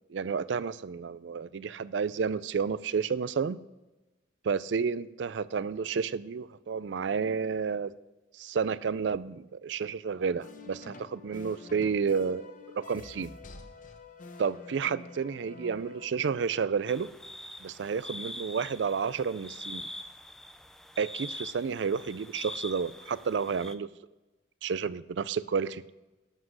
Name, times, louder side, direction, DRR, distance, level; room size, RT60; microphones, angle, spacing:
voice 1, 0.1-3.6 4.4-7.9 8.3-12.5 12.7-13.3 14.4-17.1 17.6-19.9 21.0-23.9 24.6-25.8, right 6 dB, 70° right, 17 dB, 0.4 m, -31 dB
sound 1, 10.4-16.1, left 3 dB, 40° left, 1.0 m, -48 dB
sound 2, 16.9-23.8, left 1 dB, 5° left, 0.5 m, -43 dB
12.0 x 7.4 x 6.3 m, 1.1 s
head